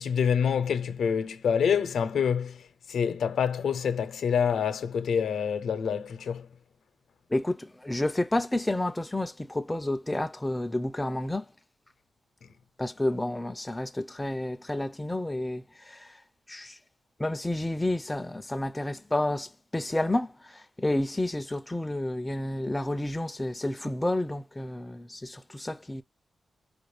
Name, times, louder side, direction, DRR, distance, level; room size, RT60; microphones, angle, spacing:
voice 1, 0.0-2.6 2.9-6.5, left 7 dB, 90° left, 0.7 m, -26 dB
voice 2, 7.3-11.4 12.8-16.2 16.5-16.8 17.2-26.0, left 1 dB, 10° left, 0.3 m, -30 dB
4.6 x 2.4 x 3.3 m
wide cardioid pair, 125°, 0 cm